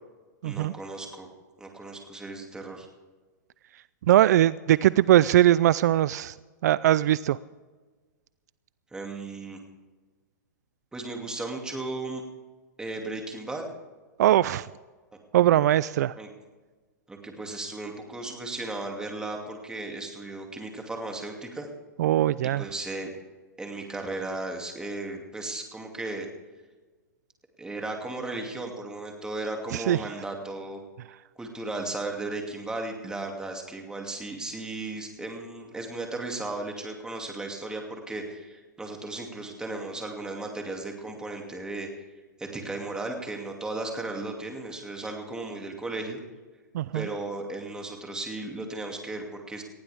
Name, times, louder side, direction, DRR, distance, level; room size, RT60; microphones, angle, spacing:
voice 1, 0.4-1.3 1.6-2.9 8.9-9.6 10.9-12.2 12.8-13.6 16.2-16.3 17.1-21.7 22.6-23.1 23.6-26.3 27.6-30.8 31.4-42.0 42.4-46.2 46.9-49.6, right 2 dB, 5° right, 2 dB, 2.5 m, -35 dB
voice 2, 4.1-6.3 6.6-7.4 14.2-14.7 15.3-16.1 22.0-22.6 29.7-30.0 46.7-47.1, right 13 dB, 65° right, 19 dB, 0.4 m, -21 dB
19.0 x 16.0 x 3.6 m, 1.3 s
hypercardioid pair, 140°, 10 cm